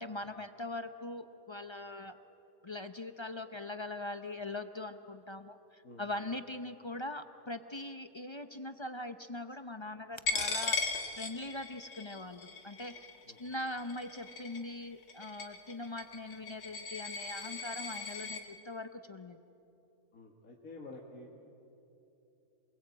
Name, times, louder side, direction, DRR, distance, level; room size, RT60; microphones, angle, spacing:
voice 1, 0.0-2.2 2.6-10.8 11.2-13.1 13.4-19.4, left 2 dB, 30° left, 9 dB, 0.5 m, -41 dB
voice 2, 5.8-6.2 13.2-13.4 20.1-21.3, left 2 dB, 65° left, -1 dB, 2.2 m, -50 dB
Coin (dropping), 10.3-18.4, left 4 dB, 85° left, 2.2 m, -38 dB
27.5 x 21.0 x 8.5 m, 2.9 s
omnidirectional pair, 1.6 m